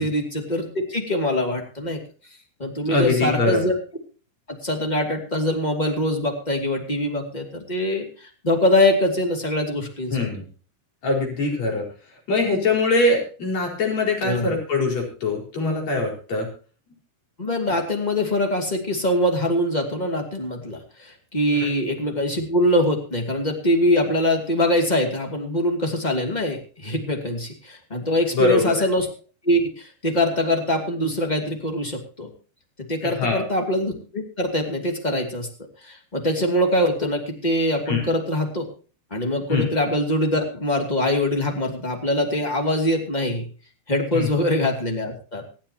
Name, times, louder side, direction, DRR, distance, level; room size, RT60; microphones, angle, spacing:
voice 1, 0.0-2.0 2.6-3.8 4.5-10.2 14.2-14.5 17.4-29.1 29.4-32.3 32.9-35.5 35.8-38.7 39.1-43.5 43.9-45.4, left 1 dB, 15° left, 3 dB, 1.6 m, -23 dB
voice 2, 2.9-3.6 10.1-10.5 11.0-11.8 12.3-16.5 21.5-21.7 28.3-28.7 33.0-33.5 37.9-38.0 39.5-39.7 44.1-44.3, left 3 dB, 40° left, 1 dB, 5.8 m, -22 dB
26.0 x 8.8 x 2.9 m, 0.37 s
omnidirectional pair, 5.2 m